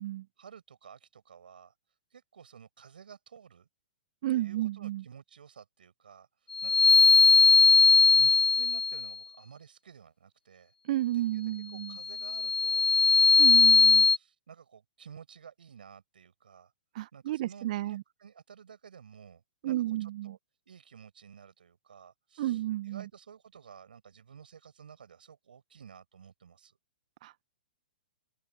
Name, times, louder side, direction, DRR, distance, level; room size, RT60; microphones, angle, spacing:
voice 1, 0.4-1.7 2.1-3.7 4.3-7.5 8.1-10.7 11.1-13.7 14.0-16.7 17.1-20.4 20.7-26.8, right 7 dB, 65° right, 7.6 m, -53 dB
voice 2, 4.2-5.0 10.9-12.0 13.4-14.1 16.9-18.0 19.6-20.3 22.4-23.0 27.2-27.5, right 15 dB, 45° right, 1.3 m, -32 dB
sound 1, 6.5-9.1 12.1-14.2, left 5 dB, 75° left, 0.5 m, -20 dB
figure-of-eight pair, 115°, 5 cm